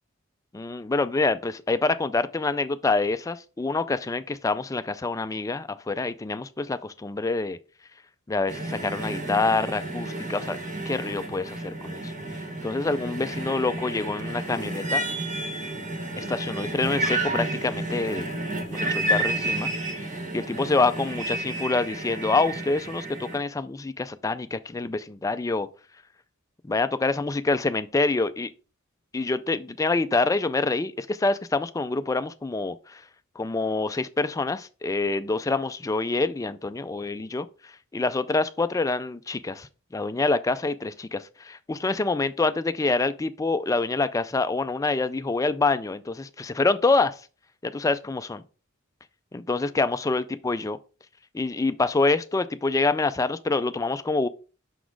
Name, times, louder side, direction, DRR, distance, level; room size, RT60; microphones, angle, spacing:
voice 1, 0.5-7.6 8.3-10.6 10.9-12.1 12.6-15.0 16.2-18.3 18.7-19.7 20.3-25.7 26.7-28.5 29.1-33.0 33.4-37.5 37.9-39.7 39.9-47.1 47.6-48.4 49.3-50.8 51.3-54.3, left 3 dB, 15° left, 0.3 m, -26 dB
sound 1, 8.5-23.4, right 1 dB, 35° right, 1.3 m, -31 dB
6.1 x 4.0 x 4.6 m
head